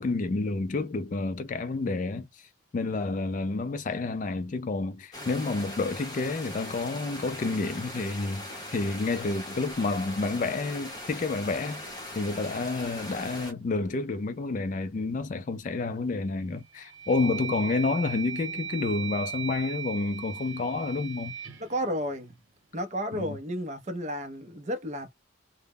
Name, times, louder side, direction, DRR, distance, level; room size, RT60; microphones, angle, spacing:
voice 1, 0.0-2.5 2.7-21.3 23.1-23.4, left 3 dB, 40° left, 0.3 m, -29 dB
sound 1, 5.1-13.5, left 1 dB, 20° left, 0.7 m, -40 dB
sound 2, 15.7-16.2 16.7-22.8, right 8 dB, 80° right, 1.0 m, -39 dB
voice 2, 21.6-22.4 22.7-25.1, equal, 35° right, 0.5 m, -32 dB
2.1 x 2.0 x 3.4 m
head